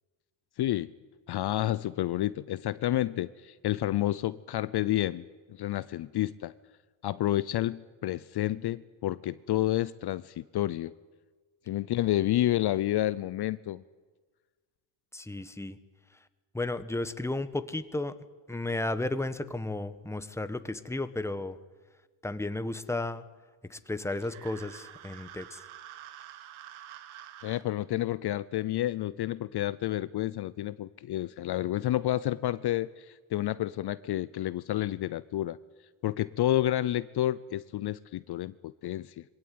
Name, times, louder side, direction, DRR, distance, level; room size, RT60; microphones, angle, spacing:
voice 1, 0.6-0.9 1.3-6.5 7.0-10.9 11.7-13.8 27.4-35.6 36.0-39.2, left 14 dB, 55° left, 17 dB, 0.7 m, -30 dB
voice 2, 15.1-15.8 16.5-18.1 18.5-21.6 22.2-23.2 23.7-25.6, left 2 dB, 5° left, 12 dB, 1.1 m, -33 dB
sound 1, 24.1-27.6, right 11 dB, 85° right, 1.8 m, -48 dB
22.0 x 17.0 x 9.4 m, 1.4 s
cardioid pair, 90°, 49 cm